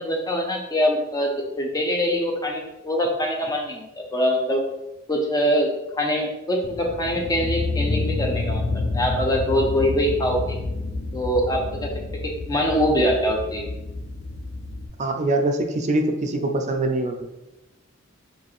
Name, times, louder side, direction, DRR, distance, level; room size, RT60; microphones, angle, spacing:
voice 1, 0.0-4.6 5.1-10.6 11.1-13.7, equal, 20° left, 1 dB, 0.7 m, -24 dB
sound 1, 6.6-14.9, left 3 dB, 55° left, 0.5 m, -29 dB
voice 2, 15.0-17.3, right 2 dB, 35° right, 4 dB, 0.5 m, -23 dB
4.3 x 3.3 x 3.2 m, 0.95 s
head